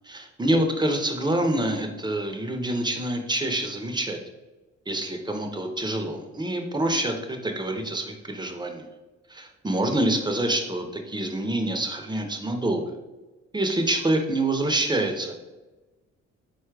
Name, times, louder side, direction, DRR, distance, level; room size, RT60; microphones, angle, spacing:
voice 1, 0.0-4.2 4.9-8.9 9.3-13.0 13.5-15.4, right 1 dB, 15° right, 4 dB, 0.6 m, -26 dB
4.2 x 2.3 x 4.6 m, 1.1 s
cardioid pair, 90°, 30 cm